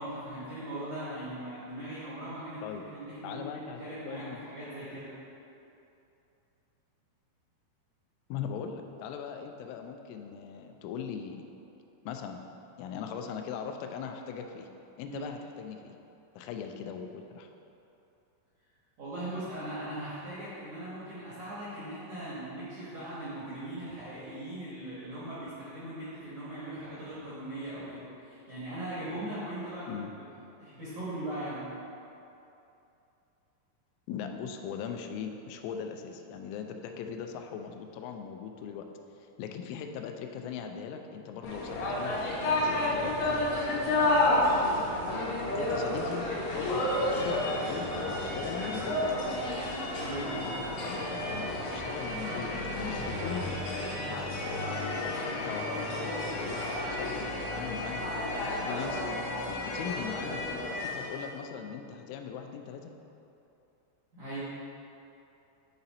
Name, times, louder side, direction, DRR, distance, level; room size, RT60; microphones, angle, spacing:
voice 1, 0.0-5.1 15.1-15.2 19.0-30.0 30.6-31.7 36.9-37.0 44.0-44.7 50.0-50.6 64.1-64.4, right 1 dB, 70° right, -10 dB, 1.8 m, -39 dB
voice 2, 3.2-3.8 4.1-4.4 8.3-11.5 12.1-12.4 12.8-14.7 15.0-15.9 16.3-17.5 29.9-30.1 34.1-38.8 39.2-43.5 45.6-49.0 50.8-52.5 52.8-53.6 54.1-54.4 55.0-58.0 58.4-59.1 59.5-62.9, left 7 dB, 85° left, 5 dB, 3.0 m, -40 dB
sound 1, 41.4-61.3, left 1 dB, 70° left, 2.5 m, -31 dB
9.8 x 4.0 x 4.1 m, 2.8 s
omnidirectional pair, 5.5 m